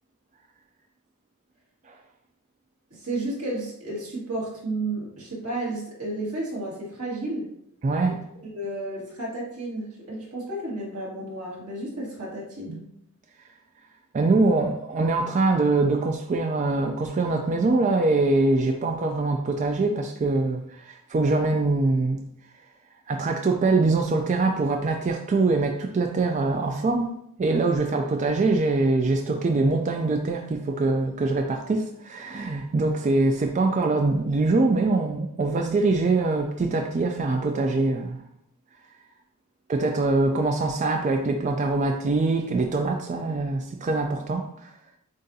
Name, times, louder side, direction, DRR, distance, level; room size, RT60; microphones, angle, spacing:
voice 1, 2.9-7.5 8.1-12.8, right 2 dB, 90° right, -4 dB, 1.8 m, -32 dB
voice 2, 7.8-8.2 12.7-12.8 14.1-22.2 23.1-38.2 39.7-44.7, right 3 dB, 35° right, 4 dB, 0.3 m, -23 dB
7.5 x 2.5 x 2.7 m, 0.72 s
head